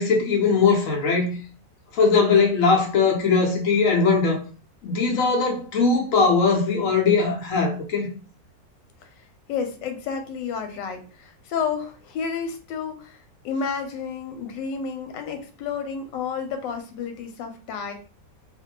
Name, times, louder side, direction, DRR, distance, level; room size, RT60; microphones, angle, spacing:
voice 1, 0.0-1.3 1.9-4.4 4.8-8.1, left 4 dB, 60° left, 0.9 m, -20 dB
voice 2, 9.5-13.2 13.4-17.9, left 6 dB, 90° left, 1.3 m, -31 dB
2.6 x 2.5 x 2.8 m
omnidirectional pair, 1.9 m